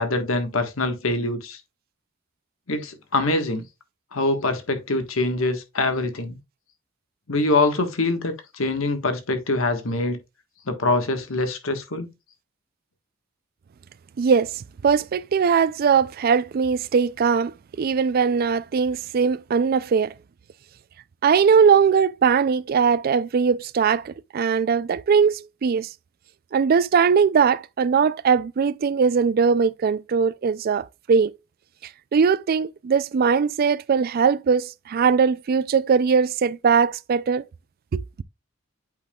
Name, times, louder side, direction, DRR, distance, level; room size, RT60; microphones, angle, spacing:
voice 1, 0.0-1.6 2.7-3.6 4.1-6.4 7.3-10.2 10.7-12.1, left 2 dB, 80° left, 1.4 m, -24 dB
voice 2, 14.2-20.1 21.2-25.9 26.5-31.4 32.1-37.4 37.9-38.0, right 6 dB, 45° right, 0.3 m, -20 dB
8.3 x 5.3 x 2.3 m
head